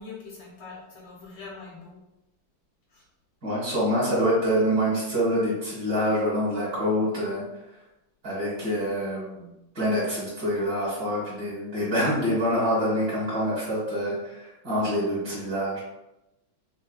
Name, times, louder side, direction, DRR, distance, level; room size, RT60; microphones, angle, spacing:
voice 1, 0.0-2.0 2.9-3.0, left 4 dB, 65° left, -3 dB, 1.3 m, -43 dB
voice 2, 3.4-7.4 8.2-9.5 9.8-15.8, equal, 55° right, -8 dB, 2.1 m, -26 dB
6.4 x 2.2 x 2.2 m, 0.94 s
omnidirectional pair, 2.4 m